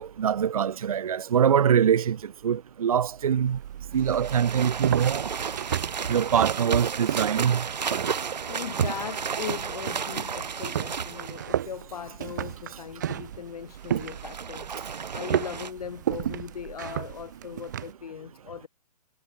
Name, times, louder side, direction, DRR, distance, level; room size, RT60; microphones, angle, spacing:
voice 1, 0.0-2.2 2.4-3.6 3.9-5.3 6.1-7.6, right 8 dB, 55° right, 1.5 m, -23 dB
sound 1, 3.4-17.9, right 11 dB, 25° right, 0.5 m, -34 dB
sound 2, 4.0-11.5 13.8-15.7, right 6 dB, 80° right, 2.6 m, -32 dB
voice 2, 8.5-18.7, left 7 dB, 60° left, 3.4 m, -39 dB
hypercardioid pair, 170°, 21 cm